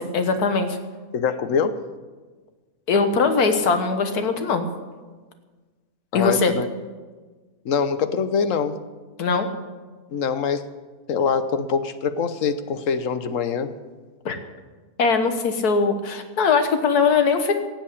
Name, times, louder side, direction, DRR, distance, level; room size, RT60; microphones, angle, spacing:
voice 1, 0.1-0.8 2.9-4.7 6.1-6.5 9.2-9.5 14.3-14.4 15.0-17.5, left 4 dB, 85° left, 8 dB, 1.8 m, -20 dB
voice 2, 1.1-1.8 6.1-6.7 7.6-8.8 10.1-10.7 11.1-13.7, left 6 dB, 60° left, 12 dB, 1.2 m, -24 dB
16.0 x 7.8 x 8.4 m, 1.4 s
omnidirectional pair, 1.6 m